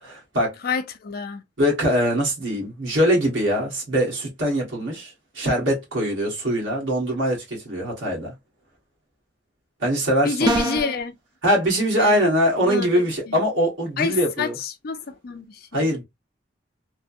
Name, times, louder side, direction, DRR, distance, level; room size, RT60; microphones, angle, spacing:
voice 1, 0.0-0.6 1.6-8.3 9.8-10.6 11.4-14.5 15.7-16.0, equal, 70° right, 1.5 m, -22 dB
voice 2, 0.6-1.4 10.2-11.1 11.9-12.3 12.6-13.4 14.0-15.9, left 5 dB, 50° left, 0.5 m, -28 dB
sound 1, 10.4-11.0, right 1 dB, 20° right, 0.5 m, -23 dB
3.2 x 2.2 x 2.6 m
head